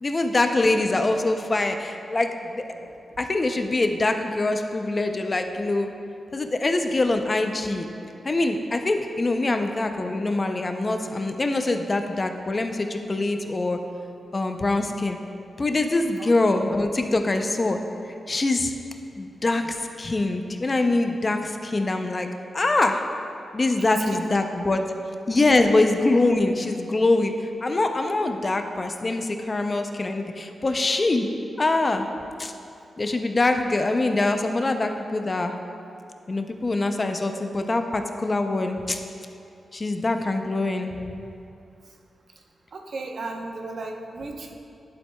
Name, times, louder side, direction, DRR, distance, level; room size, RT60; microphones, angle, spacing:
voice 1, 0.0-2.6 3.2-5.9 6.3-7.9 8.2-13.8 14.3-15.2 15.6-17.8 18.3-18.7 19.2-22.3 22.5-23.0 23.5-24.8 25.3-27.3 27.6-31.3 31.6-32.1 32.4-32.5 33.0-35.5 36.3-39.0 39.7-41.0, left 2 dB, 30° left, 6 dB, 0.4 m, -24 dB
voice 2, 23.9-24.3 42.7-44.5, right 3 dB, 65° right, 2 dB, 0.7 m, -35 dB
11.0 x 7.4 x 2.2 m, 2.6 s
wide cardioid pair, 110°, 0 cm